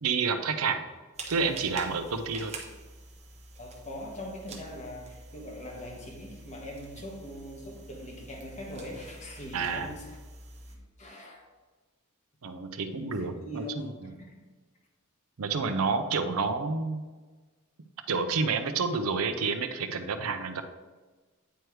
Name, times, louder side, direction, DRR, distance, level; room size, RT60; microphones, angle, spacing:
voice 1, 0.0-0.8 1.3-2.5 9.5-9.9 12.4-13.9 15.4-17.1 18.1-20.6, right 4 dB, 70° right, 8 dB, 0.6 m, -29 dB
sound 1, 1.1-10.8, right 2 dB, 30° right, 0.9 m, -47 dB
voice 2, 3.6-10.2 10.7-11.4 13.0-14.4, left 1 dB, 35° left, 0 dB, 1.3 m, -42 dB
9.1 x 3.2 x 4.6 m, 1.3 s
head